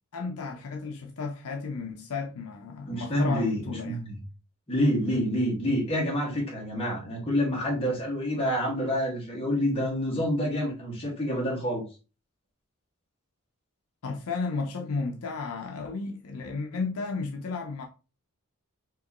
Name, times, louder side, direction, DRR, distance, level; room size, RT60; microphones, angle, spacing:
voice 1, 0.1-4.0 14.0-17.8, left 4 dB, 70° left, 0.6 m, -33 dB
voice 2, 2.9-4.2 4.7-11.8, equal, 25° left, 1.6 m, -27 dB
4.6 x 3.0 x 2.9 m
head